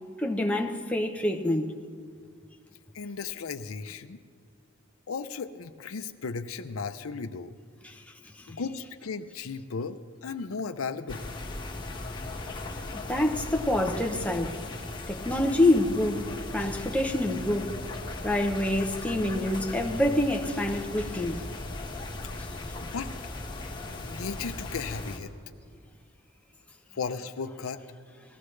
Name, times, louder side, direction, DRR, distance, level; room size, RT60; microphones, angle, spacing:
voice 1, 0.2-1.8 7.8-7.9 8.5-8.6 13.1-14.5 15.1-16.3 16.5-17.7 18.2-21.4, left 1 dB, 5° left, 0.8 m, -26 dB
voice 2, 2.9-4.2 5.1-7.5 8.5-11.3 22.8-23.3 24.0-25.3 26.9-27.8, left 5 dB, 85° left, 0.6 m, -35 dB
sound 1, 11.1-25.2, left 2 dB, 20° left, 1.5 m, -37 dB
19.5 x 15.0 x 3.2 m
head